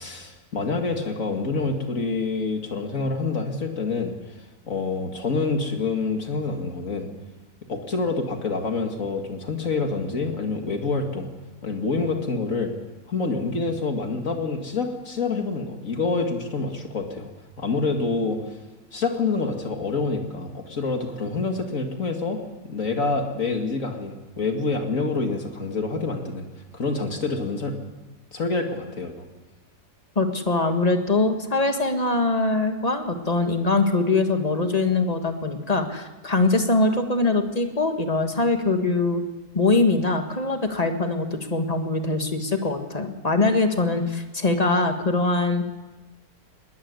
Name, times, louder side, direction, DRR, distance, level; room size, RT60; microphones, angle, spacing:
voice 1, 0.0-4.1 4.7-7.1 7.7-11.3 11.6-12.7 13.1-17.3 17.6-18.4 18.9-26.5 26.7-27.8 28.3-29.1, left 3 dB, 60° left, 4 dB, 2.4 m, -27 dB
voice 2, 30.2-39.2 39.5-45.8, left 3 dB, 25° left, 5 dB, 1.8 m, -22 dB
20.5 x 18.5 x 9.7 m, 1.2 s
omnidirectional pair, 1.6 m